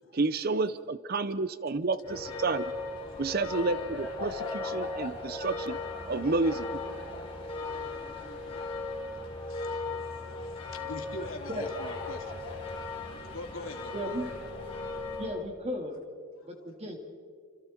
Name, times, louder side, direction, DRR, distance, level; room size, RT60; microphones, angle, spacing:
voice 1, 0.1-2.7 3.2-5.8 6.1-6.7, right 3 dB, 45° right, 14 dB, 0.7 m, -30 dB
sound 1, 2.0-15.3, left 3 dB, 25° left, 4.2 m, -37 dB
voice 2, 3.1-3.4 6.0-6.3 7.3-12.4 13.3-14.2 16.4-16.7, left 2 dB, 90° left, 3 dB, 2.9 m, -46 dB
voice 3, 13.9-14.2 15.2-16.0 16.4-17.0, equal, 30° right, 3 dB, 2.8 m, -35 dB
29.0 x 26.5 x 4.5 m, 2.1 s
head